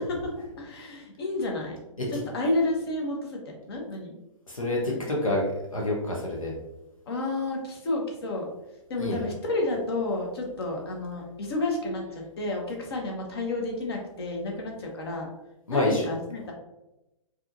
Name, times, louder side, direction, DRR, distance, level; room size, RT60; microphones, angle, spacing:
voice 1, 0.0-1.8 2.1-4.1 4.9-5.0 7.1-8.5 8.9-15.3 15.7-16.5, left 2 dB, 45° left, 0 dB, 1.1 m, -31 dB
voice 2, 4.5-6.5 9.0-9.2 15.7-16.1, left 1 dB, 75° left, -3 dB, 1.0 m, -27 dB
4.6 x 3.0 x 2.6 m, 0.97 s
figure-of-eight pair, 120°, 17 cm